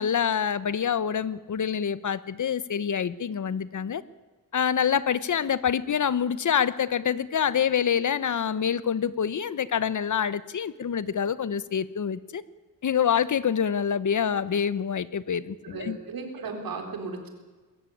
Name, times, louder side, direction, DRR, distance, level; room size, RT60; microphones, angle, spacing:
voice 1, 0.0-4.0 4.5-12.4 12.8-16.0, left 8 dB, 60° left, 17 dB, 1.0 m, -26 dB
voice 2, 15.7-17.3, right 4 dB, 90° right, 5 dB, 4.1 m, -35 dB
21.5 x 15.0 x 10.0 m, 1.3 s
wide cardioid pair, 130°, 34 cm